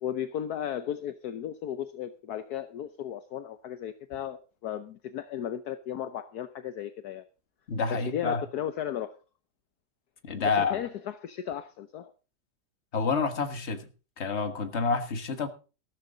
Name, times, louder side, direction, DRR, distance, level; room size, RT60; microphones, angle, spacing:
voice 1, 0.0-7.2 8.1-9.1 10.6-12.1, left 10 dB, 70° left, 1.3 m, -35 dB
voice 2, 7.7-8.4 10.2-10.8 12.9-13.9 14.2-15.5, left 4 dB, 40° left, 1.8 m, -28 dB
14.5 x 13.0 x 3.9 m
omnidirectional pair, 1.8 m